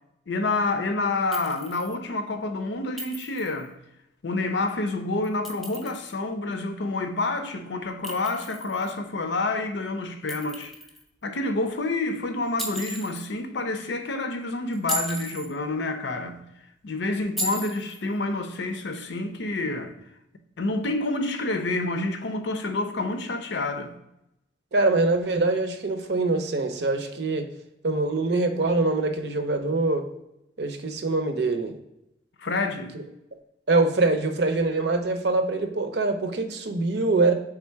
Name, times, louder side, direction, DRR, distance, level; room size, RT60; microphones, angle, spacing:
voice 1, 0.3-3.7 4.2-10.8 11.2-16.4 16.8-20.0 20.6-23.9 32.4-32.9, left 2 dB, 75° left, 0.6 m, -28 dB
Chink clink, 1.3-1.9 3.0-3.6 5.2-6.1 8.0-8.9 10.3-11.0 12.6-13.3 14.7-15.5 17.4-18.0, right 1 dB, ahead, 0.5 m, -35 dB
voice 2, 24.7-27.5 27.8-30.1 30.6-31.7 33.7-37.3, right 3 dB, 65° right, 0.6 m, -24 dB
3.6 x 3.3 x 4.4 m
head